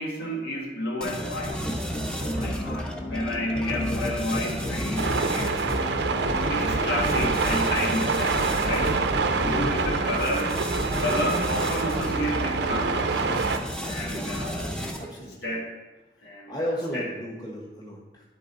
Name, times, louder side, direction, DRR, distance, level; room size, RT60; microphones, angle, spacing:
voice 1, 0.0-1.8 2.2-5.8 6.5-8.9 9.4-10.5 11.0-13.1 13.8-14.7 15.4-15.7 16.2-17.1, left 1 dB, 80° left, -2 dB, 1.5 m, -31 dB
sound 1, 1.0-15.2, equal, 5° left, 0.6 m, -33 dB
sound 2, 1.5-2.8 3.5-7.6 8.3-10.0 10.7-11.0, equal, 60° left, 1.7 m, -32 dB
sound 3, 5.0-13.6, right 4 dB, 75° right, 0.5 m, -26 dB
voice 2, 13.8-14.4 15.0-15.4 16.5-18.2, equal, 25° left, -4 dB, 1.4 m, -34 dB
11.5 x 3.9 x 4.1 m, 1.2 s
head